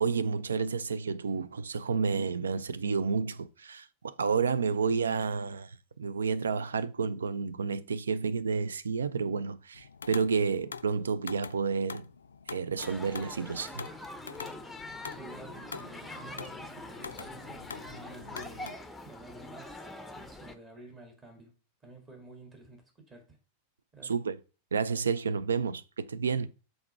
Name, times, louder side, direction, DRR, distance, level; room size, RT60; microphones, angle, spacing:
voice 1, 0.0-12.1 12.5-13.9 24.0-24.4 24.7-26.5, right 5 dB, 70° right, 0.4 m, -30 dB
sound 1, 9.7-18.7, left 5 dB, 70° left, 0.3 m, -45 dB
sound 2, 12.8-20.6, left 2 dB, 5° left, 0.7 m, -44 dB
voice 2, 15.2-18.7 19.0-19.9 20.1-21.5 21.8-23.4 23.9-24.1, right 2 dB, 20° right, 1.9 m, -51 dB
5.7 x 4.0 x 4.6 m
figure-of-eight pair, 90°, 0 cm